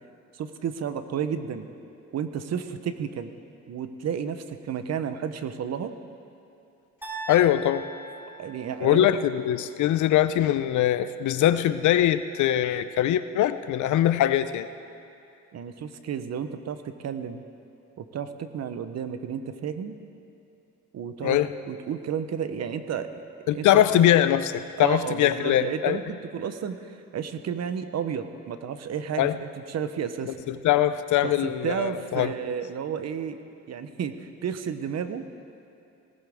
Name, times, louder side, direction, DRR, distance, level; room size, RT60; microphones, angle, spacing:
voice 1, 0.3-1.7 2.1-3.3 3.7-5.9 8.4-9.1 15.5-17.4 18.0-20.0 20.9-21.4 21.7-24.1 24.8-26.0 26.3-30.4 31.2-33.4 33.7-35.3, right 7 dB, 60° right, 10 dB, 1.0 m, -32 dB
sound 1, 7.0-9.2, right 2 dB, 5° right, 3.7 m, -40 dB
voice 2, 7.3-7.9 8.8-14.7 21.2-21.5 23.5-26.0 29.2-29.3 30.5-32.3, left 12 dB, 75° left, 13 dB, 0.6 m, -22 dB
18.5 x 17.5 x 3.6 m, 2.6 s
cardioid pair, 90°, 30 cm